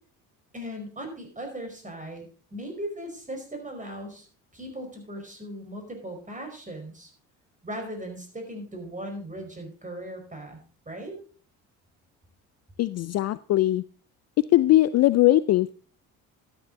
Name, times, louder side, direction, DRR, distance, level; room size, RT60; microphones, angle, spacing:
voice 1, 0.5-2.3 2.5-4.3 4.5-7.1 7.6-10.6 10.8-11.2, right 1 dB, 20° right, 4 dB, 4.9 m, -38 dB
voice 2, 12.8-13.8 14.5-15.7, left 15 dB, 40° left, 18 dB, 0.4 m, -20 dB
12.5 x 9.2 x 3.9 m, 0.41 s
hypercardioid pair, 55°, 41 cm